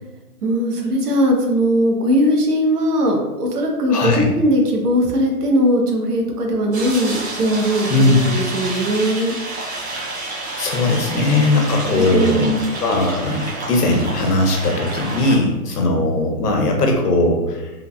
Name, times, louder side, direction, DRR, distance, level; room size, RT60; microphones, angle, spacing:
voice 1, 0.4-9.4 11.9-12.7, equal, 75° right, 1 dB, 0.9 m, -19 dB
voice 2, 3.9-4.2 7.9-8.2 10.6-17.7, left 2 dB, 75° left, 2 dB, 0.8 m, -19 dB
sound 1, 6.7-15.4, right 2 dB, 45° right, 0.8 m, -29 dB
3.2 x 2.1 x 2.4 m, 1.1 s
hypercardioid pair, 175°, 47 cm